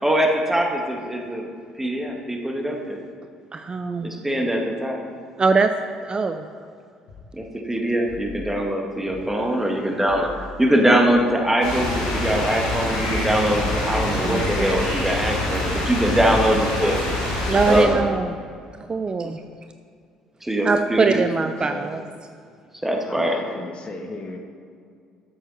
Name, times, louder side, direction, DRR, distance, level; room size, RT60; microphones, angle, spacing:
voice 1, 0.0-1.5 1.8-3.0 4.0-5.0 7.3-17.0 17.7-18.0 20.4-21.2 22.8-23.4, equal, 10° right, 1 dB, 2.0 m, -22 dB
voice 2, 3.5-4.1 5.4-5.7 6.0-6.5 13.8-14.9 17.5-18.3 18.9-19.4 20.6-22.0, right 4 dB, 30° right, 8 dB, 0.6 m, -22 dB
sound 1, 7.1-7.3 8.1-8.5 9.1-9.3 10.1-10.5 11.1-11.3 12.1-12.5 13.1-13.3 14.1-14.5, left 4 dB, 70° left, 2.1 m, -40 dB
sound 2, 11.6-17.8, left 1 dB, 85° left, 3.0 m, -25 dB
voice 3, 21.1-22.0 23.1-24.4, left 2 dB, 40° left, 3 dB, 1.5 m, -36 dB
13.0 x 7.4 x 4.3 m, 2.2 s
hypercardioid pair, 55°, 3 cm